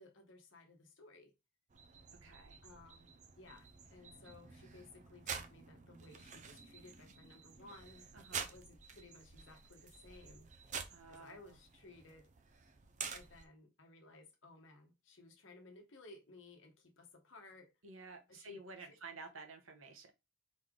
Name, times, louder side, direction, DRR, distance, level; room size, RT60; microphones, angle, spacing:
voice 1, 0.0-1.3 2.6-8.1 8.5-10.5 11.1-12.3 13.1-17.7 18.3-18.9, left 2 dB, 60° left, 1.1 m, -58 dB
sound 1, 1.7-13.5, right 6 dB, 35° right, 0.5 m, -49 dB
voice 2, 2.2-2.6 8.1-8.5 10.9-11.5 17.8-20.1, right 3 dB, 75° right, 1.0 m, -52 dB
4.0 x 3.3 x 3.7 m
head